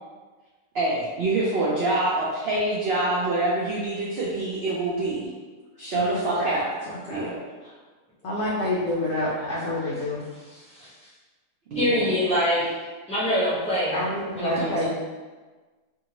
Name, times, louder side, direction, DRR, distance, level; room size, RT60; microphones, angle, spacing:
voice 1, 0.7-5.3 5.8-6.7 7.1-7.7 9.3-9.8 11.7-12.2 14.6-14.9, right 2 dB, 80° right, -6 dB, 0.5 m, -26 dB
voice 2, 5.9-6.6 7.1-7.3 8.2-10.2 13.9-14.9, left 1 dB, 75° left, -6 dB, 0.6 m, -28 dB
voice 3, 10.5-10.9 11.8-12.7 13.1-14.0 14.3-14.9, equal, 5° left, -9 dB, 0.5 m, -25 dB
2.7 x 2.6 x 2.9 m, 1.3 s
omnidirectional pair, 1.7 m